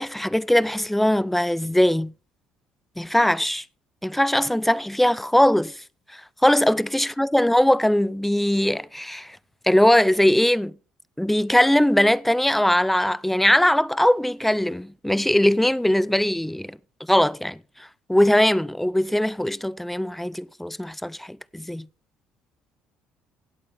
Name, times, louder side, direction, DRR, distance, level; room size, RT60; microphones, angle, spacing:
voice 1, 0.0-2.1 3.0-3.6 4.0-5.8 6.1-9.4 9.6-10.7 11.2-16.8 17.1-17.6 18.1-21.9, left 1 dB, 5° left, 0.5 m, -20 dB
17.0 x 8.3 x 3.5 m
hypercardioid pair, 65°, 5 cm